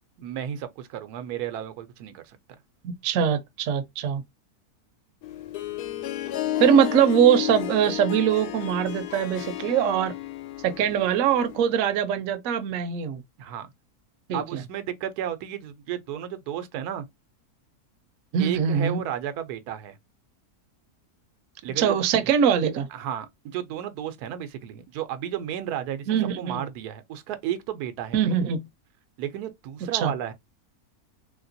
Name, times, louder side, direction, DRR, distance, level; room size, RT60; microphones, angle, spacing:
voice 1, 0.2-2.4 13.4-13.7 14.3-17.0 18.4-20.0 21.6-22.0 22.9-26.1 26.4-28.4 29.2-30.3, right 10 dB, 90° right, 1.1 m, -33 dB
voice 2, 2.8-4.2 6.6-10.1 10.6-13.2 14.3-14.6 18.3-19.0 21.8-22.9 26.1-26.6 28.1-28.6 29.9-30.1, right 8 dB, 70° right, 0.9 m, -22 dB
Harp, 5.2-11.7, left 12 dB, 90° left, 1.1 m, -32 dB
3.1 x 2.9 x 2.6 m
omnidirectional pair, 1.6 m